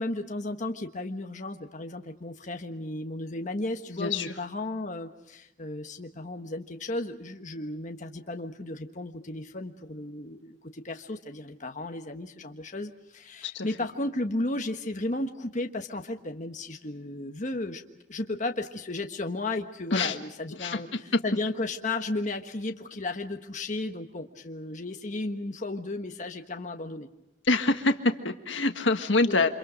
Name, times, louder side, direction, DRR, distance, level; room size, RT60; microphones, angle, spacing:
voice 1, 0.0-17.8 18.1-27.1 29.3-29.5, left 2 dB, 40° left, 4 dB, 1.4 m, -34 dB
voice 2, 3.9-4.3 13.4-13.7 19.9-20.1 20.6-21.0 27.5-29.6, left 3 dB, 80° left, 6 dB, 1.7 m, -26 dB
29.0 x 26.5 x 5.2 m, 0.87 s
head